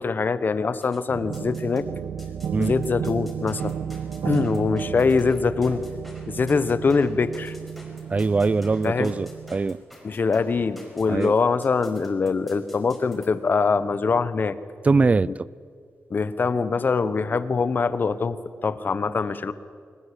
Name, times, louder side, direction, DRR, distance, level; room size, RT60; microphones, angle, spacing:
voice 1, 0.0-1.8 2.6-3.8 4.2-5.8 6.3-7.5 8.8-9.1 10.0-14.6 15.3-15.4 16.1-19.5, left 4 dB, 40° left, 14 dB, 1.0 m, -23 dB
sound 1, 0.8-1.8 2.2-13.3, equal, ahead, 5.2 m, -50 dB
sound 2, 1.1-9.6, right 8 dB, 80° right, 1.1 m, -33 dB
voice 2, 8.1-9.8 11.1-11.3 14.8-15.5, right 4 dB, 30° right, 21 dB, 0.5 m, -22 dB
20.5 x 19.5 x 8.4 m, 2.2 s
cardioid pair, 100°, 5 cm